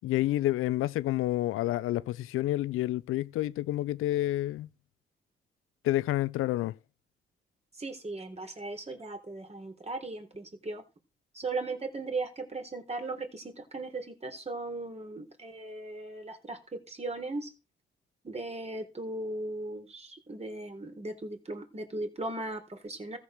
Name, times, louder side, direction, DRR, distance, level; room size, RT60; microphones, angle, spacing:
voice 1, 0.0-4.7 5.8-6.8, left 15 dB, 80° left, 0.5 m, -29 dB
voice 2, 7.8-10.8 11.3-17.5 18.2-23.2, right 2 dB, 30° right, 3.8 m, -37 dB
14.5 x 6.3 x 6.5 m
supercardioid pair, 65°, 21 cm